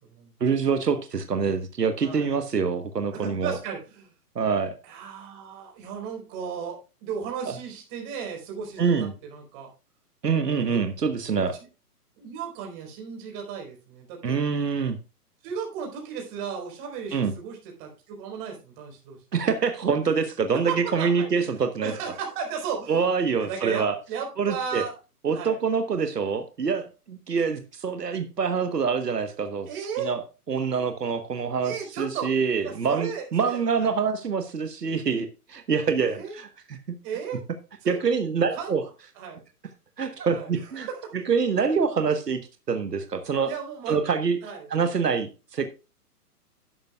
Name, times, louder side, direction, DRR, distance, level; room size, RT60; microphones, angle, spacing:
voice 1, 0.4-3.6 4.3-4.7 7.5-7.6 8.8-9.1 10.2-11.5 14.2-15.0 17.1-17.3 19.3-21.9 22.9-23.9 24.4-24.8 25.2-29.7 30.0-30.2 30.5-36.8 37.9-38.8 40.0-40.9 41.1-43.5 43.9-44.4 44.7-45.7, right 5 dB, 90° right, 8 dB, 1.4 m, -25 dB
voice 2, 2.0-2.4 3.1-4.1 4.8-9.7 10.5-10.8 12.2-14.3 15.4-19.2 20.5-23.1 23.4-24.9 25.3-25.6 29.7-30.1 31.6-32.3 32.6-33.9 36.1-36.4 37.0-37.4 37.8-38.0 38.5-38.8 39.2-39.4 40.3-41.1 43.4-44.0 44.4-44.7, right 6 dB, 30° right, 2 dB, 4.4 m, -35 dB
11.5 x 10.5 x 2.4 m, 0.31 s
hypercardioid pair, 135°, 47 cm